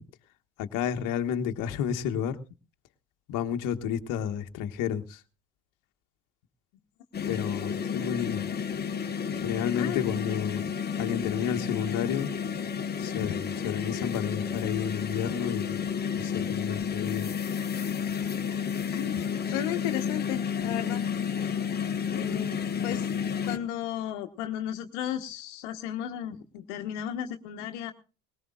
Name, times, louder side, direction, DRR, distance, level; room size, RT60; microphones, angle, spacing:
voice 1, 0.6-2.4 3.3-5.2 7.3-8.5 9.4-10.6 11.0-12.3 13.0-17.3, left 8 dB, 60° left, 1.4 m, -31 dB
sound 1, 7.1-23.6, left 7 dB, 25° left, 1.5 m, -31 dB
voice 2, 18.9-21.0 21.4-21.5 22.1-22.5 22.8-27.9, left 11 dB, 80° left, 1.3 m, -34 dB
20.0 x 18.0 x 2.4 m
supercardioid pair, 85°, 35 cm